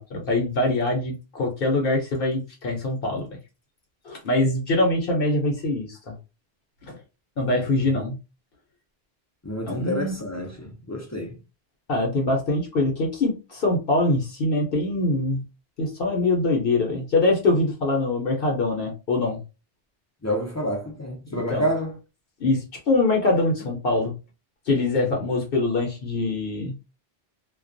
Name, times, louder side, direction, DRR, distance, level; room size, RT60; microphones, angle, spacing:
voice 1, 0.0-3.3 4.0-6.1 6.8-7.0 7.4-8.2 9.6-10.1 11.9-15.4 15.8-19.4 21.3-21.7 22.4-24.1 24.7-26.7, left 2 dB, 65° left, 0.8 m, -23 dB
voice 2, 9.4-11.3 20.2-21.9, equal, 25° left, 0.4 m, -28 dB
2.2 x 2.2 x 2.5 m
omnidirectional pair, 1.0 m